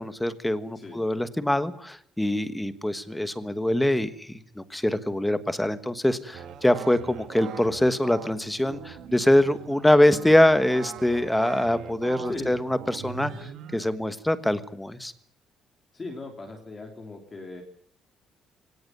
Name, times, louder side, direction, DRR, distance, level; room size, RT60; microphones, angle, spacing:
voice 1, 0.0-15.1, left 1 dB, 5° left, 12 dB, 1.3 m, -24 dB
sound 1, 6.3-13.9, right 8 dB, 60° right, 2.0 m, -41 dB
voice 2, 12.2-12.5 15.9-17.6, left 3 dB, 20° left, 3 dB, 3.4 m, -38 dB
23.5 x 18.0 x 9.5 m, 0.64 s
cardioid pair, 175°, 0 cm